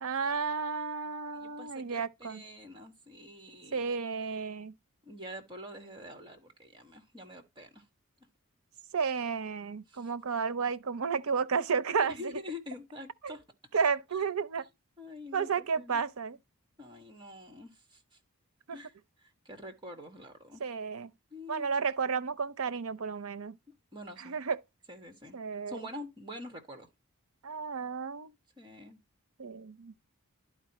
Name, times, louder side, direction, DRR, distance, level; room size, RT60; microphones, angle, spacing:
voice 1, 0.0-2.4 3.7-4.7 8.9-12.2 13.2-13.3 13.7-14.6 15.3-16.4 18.7-18.8 20.6-21.1 21.5-23.6 24.2-24.6 25.3-25.8 27.4-28.3 29.4-29.9, right 5 dB, 75° right, 0.6 m, -32 dB
voice 2, 1.3-3.9 5.0-7.9 9.9-10.1 12.1-13.4 15.0-16.0 16.8-18.2 18.7-20.6 21.3-21.7 23.7-24.4 24.9-25.4 25.7-26.9 28.6-29.0, left 1 dB, 20° right, 1.8 m, -46 dB
11.5 x 4.6 x 3.0 m
head